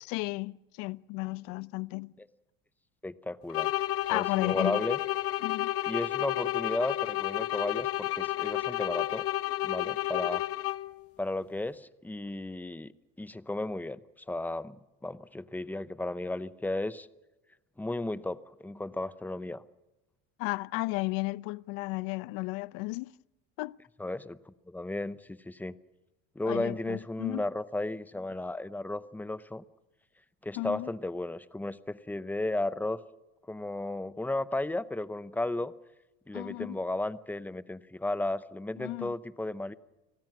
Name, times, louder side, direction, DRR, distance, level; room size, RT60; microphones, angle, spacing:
voice 1, 0.0-2.1 4.1-4.8 5.4-5.7 20.4-23.1 23.6-23.8 26.4-27.5 30.6-30.9 36.3-36.8 38.8-39.1, left 23 dB, 80° left, 0.7 m, -34 dB
voice 2, 3.0-3.7 4.1-5.0 5.9-9.3 9.6-10.4 11.2-12.9 13.2-14.0 14.3-17.1 17.8-19.6 24.0-25.7 26.4-29.6 30.4-33.0 33.5-35.7 36.3-39.7, left 2 dB, 5° left, 0.8 m, -34 dB
sound 1, 3.5-11.0, left 15 dB, 45° left, 0.9 m, -31 dB
29.5 x 20.0 x 6.2 m
cardioid pair, 135°, 32 cm